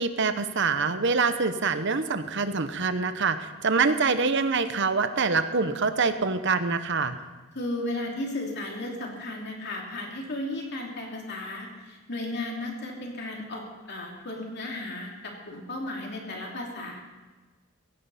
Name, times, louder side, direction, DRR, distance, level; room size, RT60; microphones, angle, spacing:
voice 1, 0.0-7.2, right 4 dB, 55° right, 10 dB, 0.9 m, -25 dB
voice 2, 7.5-17.0, left 1 dB, 50° left, 0 dB, 3.0 m, -34 dB
16.0 x 16.0 x 4.2 m, 1.3 s
head